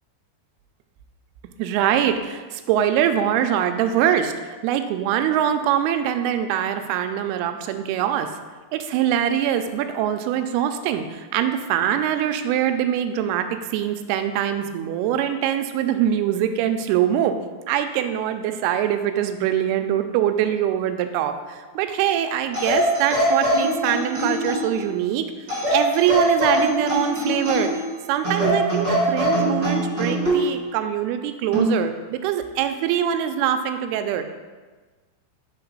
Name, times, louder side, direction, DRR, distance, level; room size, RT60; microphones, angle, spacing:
voice 1, 1.6-8.3 8.7-17.3 17.7-25.2 25.7-27.7 28.1-34.2, right 10 dB, 85° right, 7 dB, 2.4 m, -23 dB
sound 1, 22.5-24.8 25.5-27.8 28.2-30.4 31.5-31.8, right 1 dB, 65° right, 1.0 m, -22 dB
5.7 x 4.3 x 5.4 m, 1.3 s
omnidirectional pair, 4.7 m